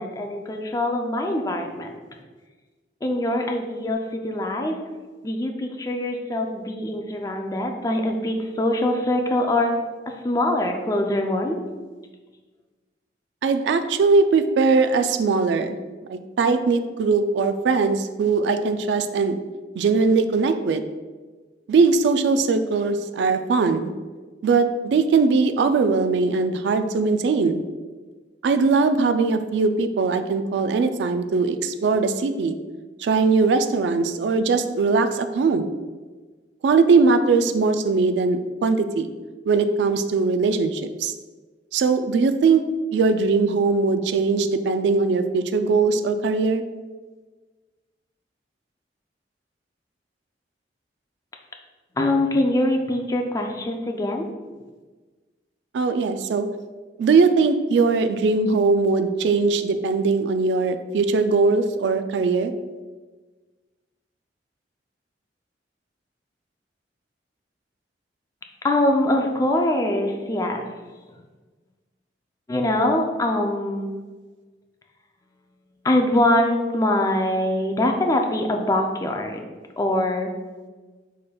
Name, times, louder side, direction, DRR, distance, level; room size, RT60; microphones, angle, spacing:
voice 1, 0.0-2.0 3.0-4.8 5.2-9.7 10.1-11.6 52.0-54.3 68.6-70.6 72.5-73.9 75.8-79.4 79.8-80.3, left 1 dB, 20° left, 3 dB, 0.4 m, -23 dB
voice 2, 13.4-15.8 16.1-19.4 19.8-20.8 21.7-23.9 24.4-27.6 28.4-32.6 33.0-35.7 36.6-39.1 39.5-41.1 41.7-42.6 42.9-46.6 55.7-56.5 57.0-62.5, right 4 dB, 70° right, 9 dB, 0.3 m, -20 dB
4.9 x 4.2 x 2.3 m, 1.3 s
head